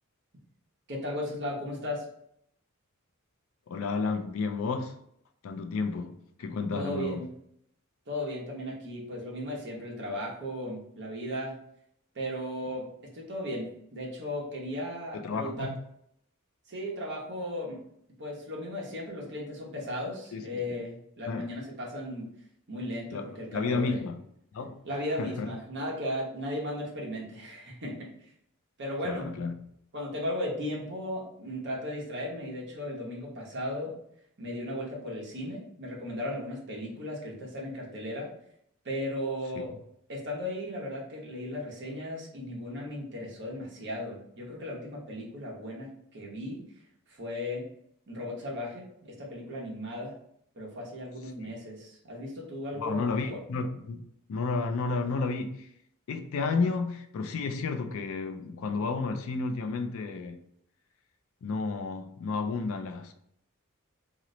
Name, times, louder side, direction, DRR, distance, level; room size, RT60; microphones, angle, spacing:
voice 1, 0.9-2.0 6.7-7.3 8.1-11.6 12.1-12.9 13.1-15.7 16.7-17.8 18.2-22.3 22.7-24.0 24.8-28.3 28.8-29.3 29.9-33.9 34.4-38.3 38.8-39.7 40.1-46.6 47.1-47.6 48.1-50.1 50.5-53.4, left 1 dB, 50° right, 1.0 m, -36 dB
voice 2, 3.7-5.0 5.4-7.3 15.1-15.8 20.3-20.5 21.3-21.5 23.1-24.2 24.5-24.8 25.2-25.5 29.0-29.5 39.5-39.6 51.4-51.5 52.7-55.7 56.1-60.4 61.4-63.1, left 4 dB, 65° left, 0.4 m, -32 dB
3.0 x 2.0 x 3.8 m
head